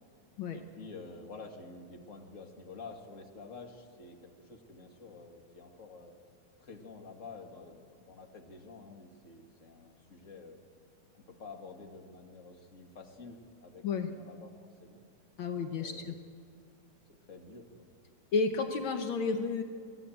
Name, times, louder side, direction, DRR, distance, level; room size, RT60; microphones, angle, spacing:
voice 1, 0.5-6.2 6.6-10.6 11.1-14.5 14.8-15.0 15.8-16.2 17.3-17.7, left 4 dB, 30° left, 3 dB, 1.8 m, -49 dB
voice 2, 15.4-16.0 18.3-19.6, left 4 dB, 80° left, 6 dB, 1.1 m, -31 dB
24.0 x 16.5 x 7.9 m, 2.2 s
omnidirectional pair, 3.5 m